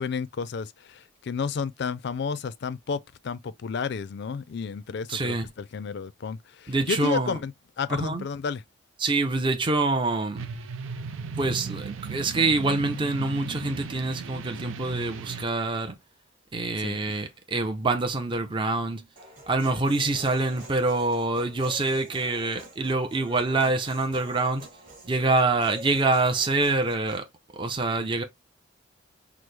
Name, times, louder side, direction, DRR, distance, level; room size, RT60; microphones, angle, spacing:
voice 1, 0.0-7.5 7.8-8.6 16.8-17.2, left 5 dB, 55° left, 0.4 m, -32 dB
voice 2, 5.1-5.5 6.7-7.4 7.9-8.3 9.0-10.5 11.4-15.9 16.5-19.1 19.5-24.7 25.0-27.3 27.5-28.2, right 2 dB, 25° right, 0.5 m, -26 dB
sound 1, 10.3-15.4, right 5 dB, 75° right, 0.5 m, -36 dB
Human voice, 19.2-27.2, right 1 dB, 40° right, 2.7 m, -46 dB
6.0 x 2.0 x 3.2 m
head